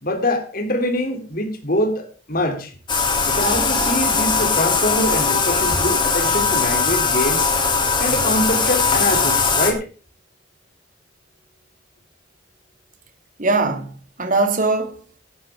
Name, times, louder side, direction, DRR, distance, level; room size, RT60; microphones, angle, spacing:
voice 1, 0.0-2.7 3.3-7.5 8.0-9.8, left 1 dB, 50° left, 3.3 m, -24 dB
Bathtub (filling or washing), 2.9-9.7, left 4 dB, 25° left, 3.1 m, -19 dB
voice 2, 13.4-15.2, right 3 dB, 45° right, 2.4 m, -21 dB
18.0 x 11.5 x 3.7 m
head